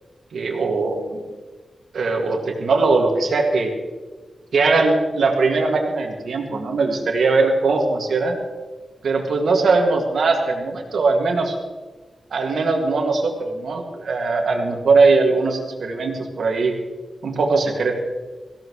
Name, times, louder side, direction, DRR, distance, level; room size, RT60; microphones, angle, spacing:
voice 1, 0.3-1.2 1.9-3.7 4.5-8.4 9.0-11.5 12.3-16.7 17.2-18.0, right 3 dB, 80° right, 2 dB, 2.3 m, -20 dB
18.0 x 16.0 x 3.3 m, 1.3 s
wide cardioid pair, 85°, 0 cm